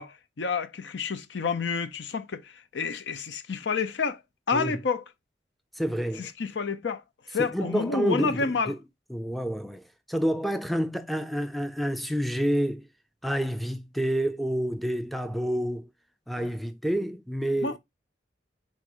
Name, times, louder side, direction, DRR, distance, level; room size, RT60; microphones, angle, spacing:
voice 1, 0.0-4.2 4.5-5.0 6.2-7.0 7.3-8.7 16.4-16.5 17.6-17.8, left 5 dB, 85° left, 0.6 m, -29 dB
voice 2, 5.8-6.3 7.4-8.8 9.1-9.8 10.1-12.8 13.2-15.9 16.3-17.8, equal, ahead, 0.4 m, -28 dB
4.2 x 2.6 x 4.8 m
head